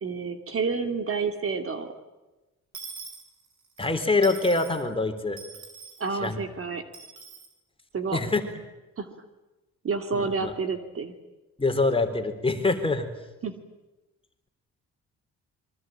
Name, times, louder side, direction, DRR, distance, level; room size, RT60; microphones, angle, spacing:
voice 1, 0.0-1.9 6.0-6.8 7.9-8.2 9.0-9.1 9.8-11.1 13.4-13.6, right 4 dB, 45° right, 7 dB, 2.7 m, -29 dB
Dishes pots and pans / Coin (dropping), 2.7-3.8 4.2-4.8 5.4-6.1 6.9-7.5, right 5 dB, 70° right, 7.1 m, -43 dB
voice 2, 3.8-5.4 6.1-6.4 8.1-8.5 10.1-10.5 11.6-13.1, left 3 dB, 20° left, 6 dB, 3.6 m, -25 dB
26.5 x 23.0 x 9.0 m, 1.1 s
cardioid pair, 90°, 30 cm